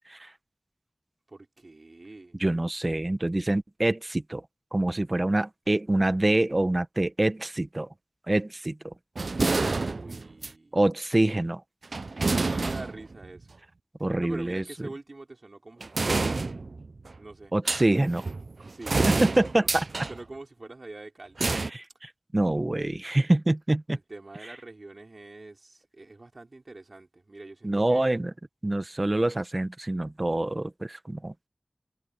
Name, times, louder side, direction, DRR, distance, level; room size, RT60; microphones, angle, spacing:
voice 1, 1.3-2.4 9.6-10.8 12.5-13.6 14.2-16.6 17.2-17.5 18.7-19.0 19.6-19.7 20.1-21.4 23.9-28.0, right 2 dB, 60° right, 5.3 m, -44 dB
voice 2, 2.4-4.4 4.7-7.9 8.3-8.9 10.7-11.6 14.0-14.6 17.5-18.2 19.1-19.6 21.4-24.0 27.6-28.3 28.6-31.3, right 1 dB, 35° right, 1.1 m, -26 dB
sound 1, 9.2-10.5 11.8-13.4 15.8-17.2 17.7-20.2 21.4-21.7, right 3 dB, 85° right, 0.4 m, -28 dB
wide cardioid pair, 60°, 0 cm